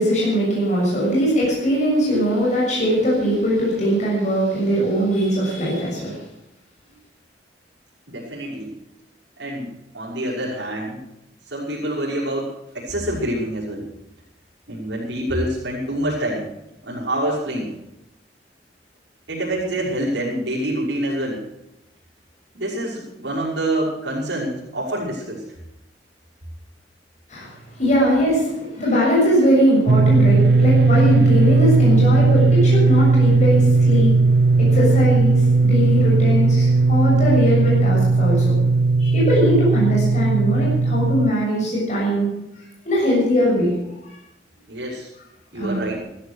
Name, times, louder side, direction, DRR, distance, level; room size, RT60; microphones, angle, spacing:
voice 1, 0.0-6.2 27.3-27.5 27.8-34.1 34.6-38.6 39.0-42.3 42.9-43.7 45.5-45.8, equal, 45° left, -5 dB, 7.0 m, -20 dB
voice 2, 8.1-8.8 9.4-11.0 11.4-13.9 14.7-16.5 16.8-17.7 19.3-21.4 22.5-25.4 44.7-45.1 45.5-46.0, right 1 dB, 85° right, -7 dB, 6.1 m, -26 dB
sound 1, 29.9-41.3, right 3 dB, 70° right, 0.5 m, -16 dB
15.5 x 13.5 x 6.4 m, 0.89 s
head